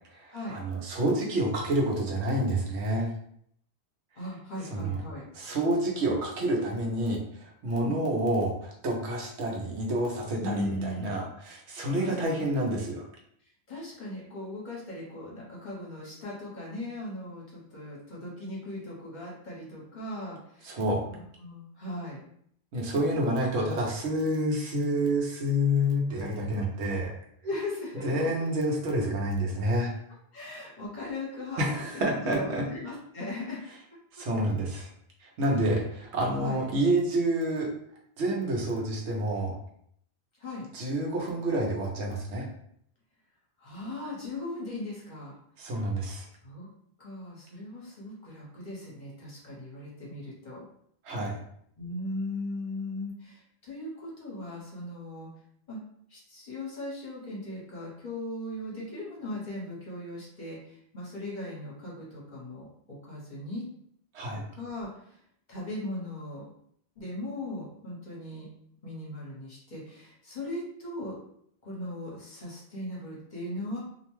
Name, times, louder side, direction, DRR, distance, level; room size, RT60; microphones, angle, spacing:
voice 1, 0.1-3.1 4.7-5.0 5.3-13.1 20.6-21.0 22.7-27.1 28.0-29.9 31.6-32.6 34.1-34.9 35.2-37.7 38.2-39.5 40.7-42.5 45.6-46.2 51.0-51.3 64.1-64.4, right 1 dB, 85° right, -1 dB, 1.0 m, -28 dB
voice 2, 4.1-5.2 7.7-7.9 10.4-11.1 11.9-12.2 13.7-20.8 21.1-22.2 27.4-28.3 30.3-31.9 32.2-33.6 36.4-36.6 40.4-40.7 43.6-45.3 46.4-46.7 47.0-50.6 51.8-55.3 55.7-55.8 56.1-63.6 64.3-65.2 65.5-66.5 67.0-68.5 68.8-71.2 71.6-73.8, left 1 dB, 45° left, -5 dB, 1.0 m, -38 dB
2.6 x 2.1 x 3.0 m, 0.68 s
omnidirectional pair, 1.1 m